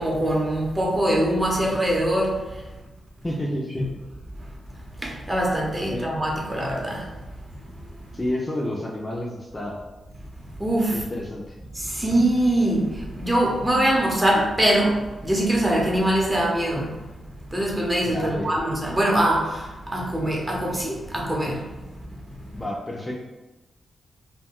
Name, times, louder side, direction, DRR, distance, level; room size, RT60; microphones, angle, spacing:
voice 1, 0.0-2.3 3.8-3.9 5.0-7.0 10.6-11.0 11.7-16.9 17.5-21.6, right 1 dB, 20° right, -2 dB, 0.7 m, -23 dB
voice 2, 3.2-3.9 5.9-6.1 8.1-9.8 10.9-11.6 18.0-18.5 22.5-23.1, left 1 dB, 20° left, -2 dB, 0.4 m, -30 dB
2.2 x 2.1 x 3.6 m, 1.1 s
cardioid pair, 75°, 0 cm